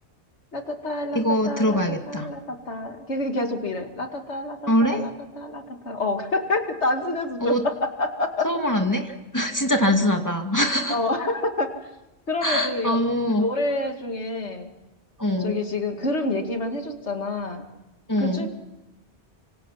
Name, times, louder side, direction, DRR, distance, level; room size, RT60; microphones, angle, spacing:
voice 1, 0.5-5.1 5.4-8.5 10.9-11.7 12.3-13.0 13.3-14.7 15.4-17.6 18.2-18.5, left 2 dB, 85° left, 4 dB, 2.5 m, -28 dB
voice 2, 1.1-2.3 4.7-5.0 7.4-7.6 8.4-11.0 12.4-13.4 15.2-15.5 18.1-18.5, equal, 15° left, 3 dB, 2.3 m, -23 dB
26.0 x 25.5 x 5.8 m, 1.0 s
omnidirectional pair, 1.1 m